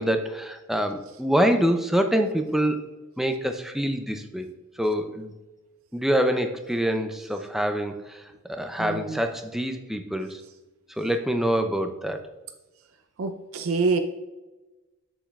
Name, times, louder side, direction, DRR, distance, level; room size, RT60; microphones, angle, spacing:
voice 1, 0.0-2.9 3.2-4.5 4.8-5.3 5.9-8.0 8.5-10.4 11.0-12.2, equal, ahead, 6 dB, 0.5 m, -25 dB
voice 2, 8.8-9.2 13.2-14.0, right 4 dB, 75° right, 7 dB, 0.5 m, -26 dB
7.2 x 7.1 x 2.3 m, 1.1 s
head